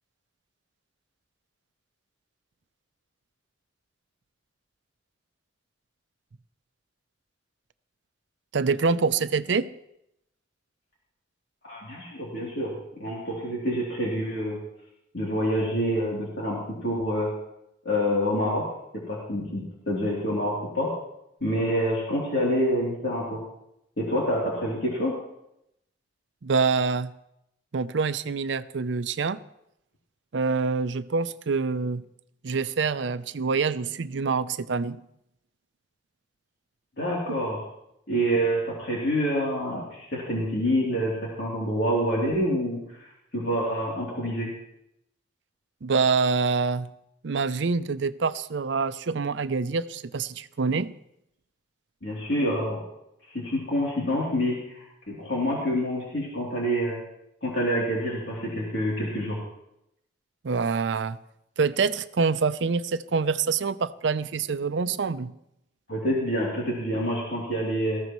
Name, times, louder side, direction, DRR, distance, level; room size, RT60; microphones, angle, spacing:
voice 1, 8.5-9.7 26.4-27.1 27.7-29.4 30.3-32.0 32.4-35.0 45.8-46.9 47.2-50.9 60.4-61.2 61.6-65.3, right 4 dB, 70° right, 0.5 m, -26 dB
voice 2, 11.6-12.7 13.0-14.6 15.1-17.3 17.8-18.6 19.1-20.9 21.4-23.4 24.0-25.1 37.0-37.6 38.1-44.5 52.0-52.8 53.3-57.0 57.4-59.4 65.9-68.0, equal, 65° left, 3.1 m, -27 dB
19.5 x 14.5 x 3.1 m
head